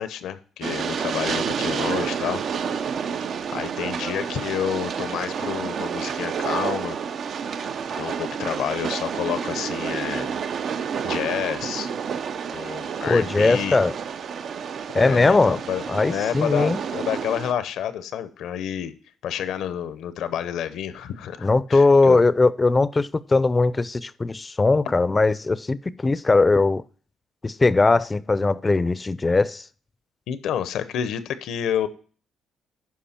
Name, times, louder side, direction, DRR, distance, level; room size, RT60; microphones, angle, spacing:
voice 1, 0.0-2.4 3.5-7.0 8.0-10.4 11.0-11.9 12.5-13.8 15.0-18.9 19.2-22.2 30.3-31.9, left 9 dB, 80° left, 0.8 m, -29 dB
Train, 0.6-17.5, right 6 dB, 60° right, 0.6 m, -29 dB
voice 2, 13.1-13.9 14.9-15.6 15.9-16.8 21.4-26.8 27.4-29.6, left 3 dB, 25° left, 0.5 m, -19 dB
11.5 x 4.9 x 4.3 m
cardioid pair, 90°, 0 cm